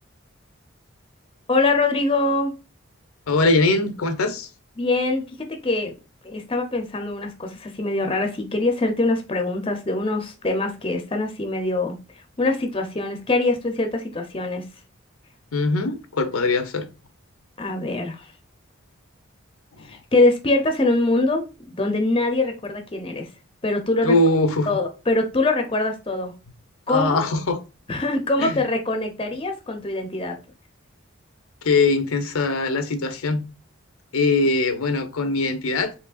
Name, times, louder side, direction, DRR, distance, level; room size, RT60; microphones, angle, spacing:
voice 1, 1.5-2.5 4.8-6.0 6.2-12.0 12.4-14.6 17.6-18.3 19.9-23.3 23.6-24.1 24.7-26.3 26.9-27.2 27.9-30.4, left 2 dB, 25° left, 0.5 m, -23 dB
voice 2, 3.3-4.5 15.5-16.9 19.8-19.9 24.0-24.7 26.9-27.6 28.4-28.6 31.6-33.4 34.1-35.9, left 3 dB, 85° left, 0.6 m, -21 dB
4.6 x 3.2 x 2.4 m
head